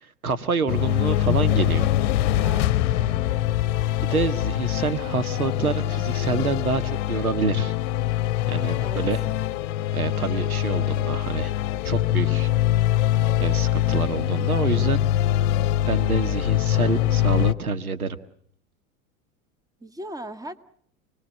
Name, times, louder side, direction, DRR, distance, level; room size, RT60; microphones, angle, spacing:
voice 1, 0.0-1.9 4.0-7.7 8.5-9.2 9.9-11.5 11.8-12.5 13.4-15.0 15.9-18.2, right 4 dB, 85° right, 11 dB, 1.8 m, -27 dB
sound 1, 0.7-17.5, left 12 dB, 60° left, 0.9 m, -23 dB
voice 2, 2.4-3.4 8.8-9.0 19.8-20.6, right 1 dB, 10° right, 12 dB, 1.8 m, -38 dB
29.5 x 20.5 x 7.5 m, 0.66 s
figure-of-eight pair, 85°, 42 cm